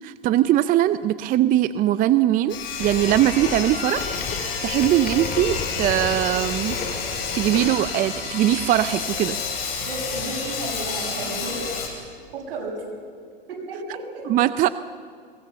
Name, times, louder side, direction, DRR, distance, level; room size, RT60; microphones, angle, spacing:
voice 1, 0.0-6.8 7.1-9.4 14.2-14.7, right 13 dB, 30° right, 14 dB, 0.5 m, -21 dB
Sawing, 2.5-11.9, left 5 dB, 75° left, 6.1 m, -30 dB
sound 1, 2.8-7.9, left 5 dB, 30° left, 2.9 m, -33 dB
voice 2, 9.7-11.6 12.3-12.9 13.5-14.2, right 2 dB, 70° right, -1 dB, 7.9 m, -33 dB
22.5 x 18.5 x 7.0 m, 2.1 s
hypercardioid pair, 115°, 29 cm